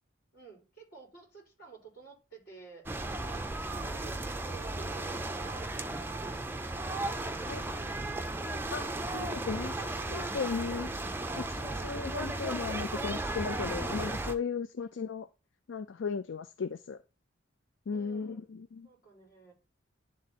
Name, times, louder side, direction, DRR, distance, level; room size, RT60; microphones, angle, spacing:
voice 1, 0.3-2.8 3.2-6.8 10.6-11.0 11.6-12.4 14.8-14.9 17.9-18.5 18.8-19.5, right 5 dB, 45° left, 4.2 m, -52 dB
sound 1, 2.9-14.3, right 2 dB, 10° right, 0.5 m, -35 dB
voice 2, 7.4-8.0 8.7-10.9 11.4-15.3 15.7-17.0 17.9-18.9, left 5 dB, 65° left, 0.4 m, -36 dB
11.0 x 3.8 x 4.2 m
head